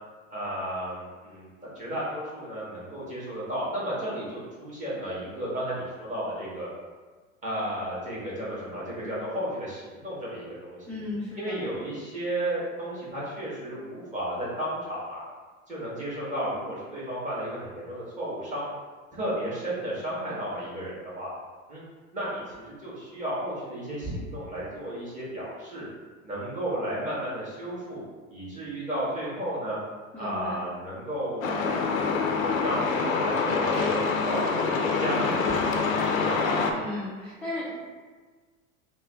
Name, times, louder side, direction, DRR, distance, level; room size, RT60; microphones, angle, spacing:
voice 1, 0.3-1.5 1.7-6.7 7.4-10.9 11.4-15.2 15.7-18.7 19.1-21.3 21.7-21.8 22.1-25.9 26.2-28.0 28.3-29.8 30.2-34.7 35.0-35.9 36.2-36.4, right 1 dB, 20° right, -8 dB, 1.5 m, -33 dB
voice 2, 10.9-11.6 30.1-30.7 35.2-35.7 36.7-37.8, left 2 dB, 5° left, -8 dB, 0.4 m, -36 dB
Truck, 31.4-36.7, left 4 dB, 80° left, 0.5 m, -26 dB
3.1 x 2.1 x 3.5 m, 1.4 s
figure-of-eight pair, 85°, 40 cm